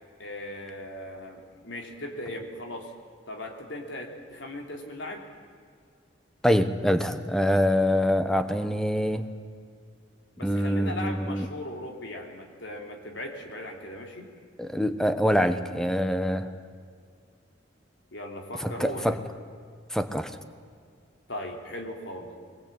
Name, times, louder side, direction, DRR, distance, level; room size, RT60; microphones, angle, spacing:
voice 1, 0.2-2.9 3.3-5.3 10.4-14.3 18.1-19.2 21.3-22.4, left 1 dB, 85° left, 2 dB, 3.2 m, -38 dB
voice 2, 6.4-9.3 10.4-11.5 14.6-16.5 18.6-19.2 19.9-20.3, equal, 5° left, 9 dB, 1.1 m, -25 dB
23.0 x 20.0 x 8.9 m, 2.1 s
head